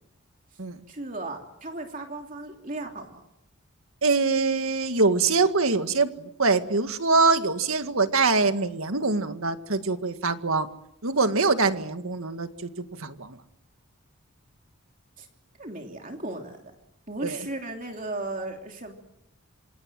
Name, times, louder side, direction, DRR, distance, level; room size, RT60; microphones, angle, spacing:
voice 1, 0.9-3.2 15.2-15.3 15.6-16.7 17.1-18.9, right 2 dB, 35° right, 2 dB, 3.1 m, -36 dB
voice 2, 4.0-10.7 11.0-13.4 17.2-17.4, right 3 dB, 70° right, 8 dB, 2.0 m, -24 dB
27.5 x 26.5 x 7.7 m, 0.81 s
head